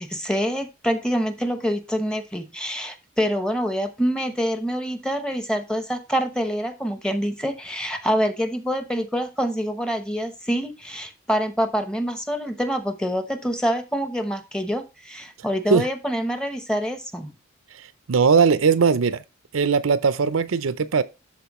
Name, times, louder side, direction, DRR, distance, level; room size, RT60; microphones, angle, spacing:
voice 1, 0.0-17.3, equal, 5° left, 0.9 m, -26 dB
voice 2, 17.7-19.2 19.5-21.0, right 5 dB, 80° right, 0.6 m, -19 dB
12.5 x 4.3 x 3.0 m
head